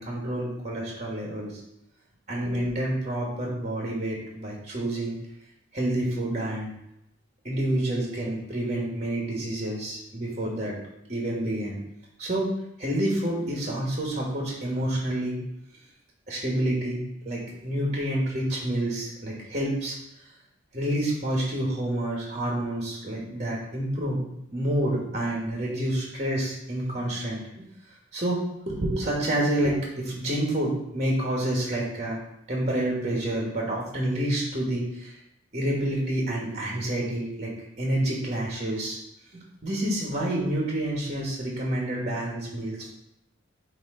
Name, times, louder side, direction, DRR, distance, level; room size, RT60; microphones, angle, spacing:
voice 1, 0.0-1.6 2.3-5.1 5.7-6.7 7.4-10.7 11.1-11.8 12.2-12.5 12.8-15.4 16.3-19.9 20.7-24.2 24.5-27.4 28.1-32.2 32.5-35.2 35.5-37.5 37.8-39.0 39.6-42.9, right 1 dB, 35° right, -2 dB, 1.4 m, -28 dB
8.7 x 3.0 x 3.7 m, 0.78 s
head